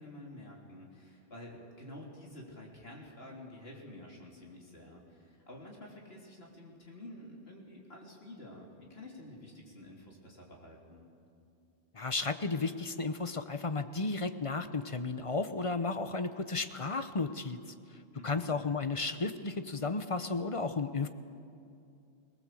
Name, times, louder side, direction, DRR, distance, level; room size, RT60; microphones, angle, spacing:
voice 1, 0.0-11.1 18.2-18.5, left 1 dB, 65° left, -2 dB, 3.7 m, -50 dB
voice 2, 11.9-17.6 18.2-21.1, left 3 dB, 35° left, 10 dB, 0.8 m, -33 dB
21.5 x 19.0 x 7.7 m, 2.5 s
omnidirectional pair, 1.1 m